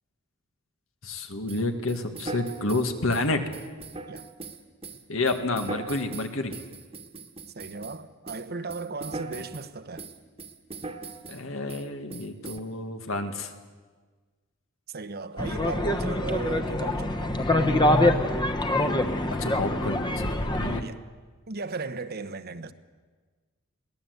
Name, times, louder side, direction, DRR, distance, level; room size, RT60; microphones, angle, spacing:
voice 1, 1.0-3.4 5.1-6.6 11.3-13.5 19.4-20.3 20.6-20.8, left 2 dB, 80° left, 1.9 m, -29 dB
sound 1, 1.5-8.0 8.3-9.7 10.0-11.4 11.7-11.8 12.1-12.6, right 3 dB, 30° right, 1.4 m, -40 dB
voice 2, 7.5-10.1 14.9-17.4 20.8-21.0 21.5-22.7, right 3 dB, 50° right, 0.9 m, -36 dB
sound 2, 15.4-20.8, left 1 dB, 20° left, 1.1 m, -25 dB
22.5 x 17.5 x 8.1 m
head